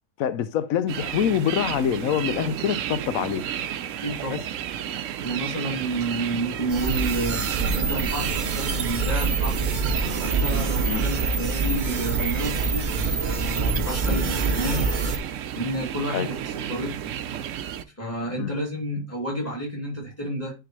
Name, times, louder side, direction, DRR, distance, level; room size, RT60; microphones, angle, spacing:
voice 1, 0.2-3.4 4.3-4.4 10.9-11.0 14.1-14.2 16.1-16.3 18.4-18.5, left 9 dB, 90° left, 1.0 m, -25 dB
sound 1, 0.9-17.8, right 10 dB, 75° right, 0.9 m, -32 dB
voice 2, 4.0-4.4 5.2-7.4 7.7-9.7 10.2-14.9 15.6-16.9 18.0-20.5, right 1 dB, 10° left, 2.5 m, -30 dB
sound 2, 6.7-15.2, right 4 dB, 45° right, 0.8 m, -26 dB
10.0 x 3.8 x 3.1 m
omnidirectional pair, 1.4 m